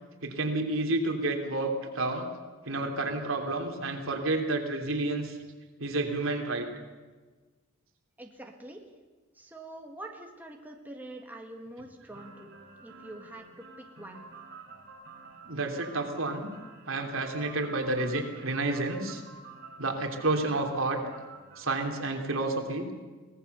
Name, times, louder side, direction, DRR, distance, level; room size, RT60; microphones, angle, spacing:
voice 1, 0.2-2.3 2.6-5.4 5.8-6.7 15.4-16.5 16.9-19.2 19.8-21.0 21.6-22.9, right 2 dB, 70° right, 3 dB, 3.2 m, -30 dB
voice 2, 8.2-8.9 9.3-12.5 12.8-14.3, right 1 dB, 10° right, 1 dB, 1.9 m, -45 dB
sound 1, 12.1-21.8, right 3 dB, 50° right, 4.9 m, -49 dB
24.0 x 18.5 x 6.9 m, 1.3 s
head